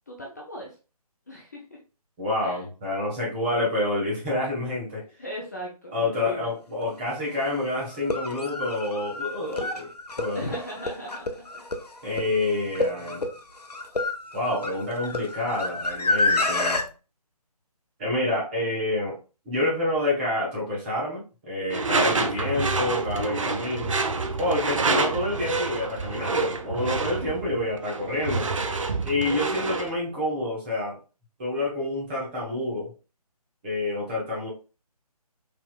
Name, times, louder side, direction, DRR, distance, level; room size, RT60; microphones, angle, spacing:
voice 1, 0.1-0.7 1.3-1.6 2.4-2.6 5.2-5.9 6.2-6.5 10.3-11.3, equal, 25° left, -2 dB, 0.4 m, -37 dB
voice 2, 2.2-5.0 5.9-9.9 10.2-10.4 12.0-13.3 14.3-16.8 18.0-19.2 19.4-23.9 24.4-28.5 29.0-31.0 31.4-32.9 33.6-34.5, left 1 dB, 15° right, -5 dB, 0.9 m, -28 dB
voice whine scream, 6.8-6.9 7.9-16.8, left 2 dB, 80° left, 0.6 m, -29 dB
Door / Screech, 21.7-29.9, right 3 dB, 55° right, 0.4 m, -27 dB
3.3 x 2.6 x 2.2 m, 0.34 s
figure-of-eight pair, 150°, 20 cm